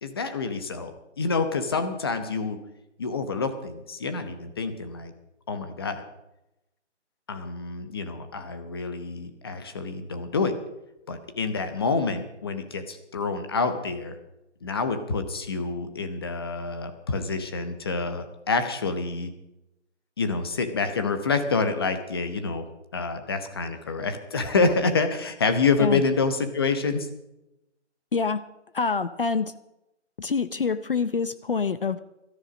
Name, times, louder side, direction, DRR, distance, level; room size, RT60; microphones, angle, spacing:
voice 1, 0.0-2.6 3.0-5.1 5.5-6.0 7.3-10.6 11.1-14.2 14.6-19.3 20.2-22.7 22.9-27.1, left 4 dB, 20° left, 8 dB, 1.0 m, -27 dB
voice 2, 28.1-28.4 28.7-29.5 30.2-32.0, left 5 dB, 50° left, 14 dB, 0.7 m, -26 dB
17.0 x 13.5 x 5.2 m, 0.89 s
figure-of-eight pair, 160°, 36 cm